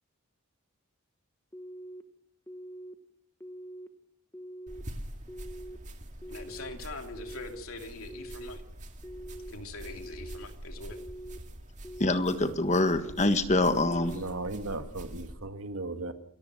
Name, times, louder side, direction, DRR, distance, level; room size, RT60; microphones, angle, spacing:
sound 1, 1.5-2.0 2.5-3.0 3.4-3.9 4.3-4.8 5.3-5.8 6.2-6.7 7.2-7.6 8.1-8.6 9.0-9.5 10.0-10.5 10.9-11.4 11.8-12.3 12.8-13.3 13.7-14.2, right 1 dB, 10° left, 1.3 m, -44 dB
sound 2, 4.7-15.4, right 1 dB, 35° right, 2.2 m, -45 dB
voice 1, 6.3-8.6 9.5-11.0, left 3 dB, 75° left, 2.9 m, -43 dB
voice 2, 12.0-14.2, left 2 dB, 30° left, 1.5 m, -25 dB
voice 3, 14.1-16.1, right 2 dB, 75° right, 1.9 m, -36 dB
29.0 x 14.5 x 6.2 m
head